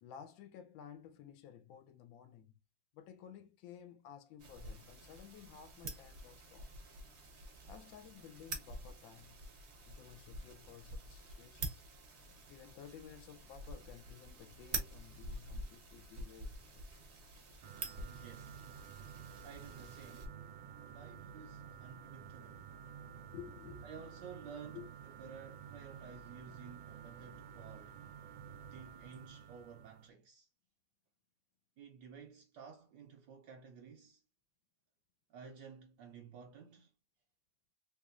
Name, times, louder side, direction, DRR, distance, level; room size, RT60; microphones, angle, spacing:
voice 1, 0.0-2.5 2.9-6.7 7.7-9.4 9.9-11.8 12.5-17.0 23.0-23.9 24.7-24.9, left 9 dB, 80° left, 1.4 m, -54 dB
sound 1, 4.4-20.3, right 2 dB, 50° right, 0.8 m, -47 dB
sound 2, 17.6-30.1, right 8 dB, 90° right, 1.4 m, -52 dB
voice 2, 18.0-18.6 19.4-20.4 20.8-22.6 23.8-24.8 25.2-28.0 28.6-30.5 31.8-34.2 35.3-36.9, right 6 dB, 75° right, 1.1 m, -53 dB
3.4 x 3.0 x 2.4 m
omnidirectional pair, 2.1 m